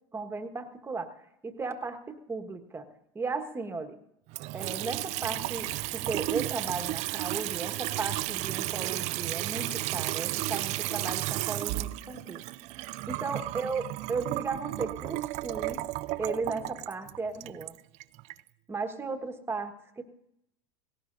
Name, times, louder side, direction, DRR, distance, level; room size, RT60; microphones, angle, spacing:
voice 1, 0.1-2.9 3.1-4.0 4.5-12.4 13.1-15.9 16.2-17.7 18.7-20.0, right 4 dB, 15° right, 7 dB, 1.4 m, -36 dB
Water tap faucet / Sink (filling or washing) / Trickle dribble, 4.3-18.4, right 18 dB, 50° right, 0.4 m, -33 dB
sound 1, 4.8-10.9, left 3 dB, 45° left, 3.2 m, -58 dB
18.0 x 17.0 x 2.6 m, 0.79 s
supercardioid pair, 105°, 15 cm